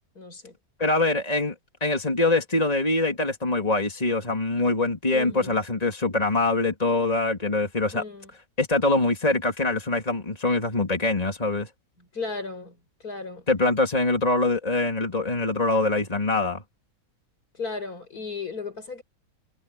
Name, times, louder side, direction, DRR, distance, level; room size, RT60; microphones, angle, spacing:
voice 1, 0.2-0.6 5.1-5.6 6.1-6.2 7.9-8.3 12.0-13.5 17.5-19.0, left 4 dB, 75° left, 5.7 m, -36 dB
voice 2, 0.8-1.5 1.8-8.0 8.6-11.7 13.5-16.6, left 2 dB, 25° left, 3.2 m, -24 dB
omnidirectional pair, 1.6 m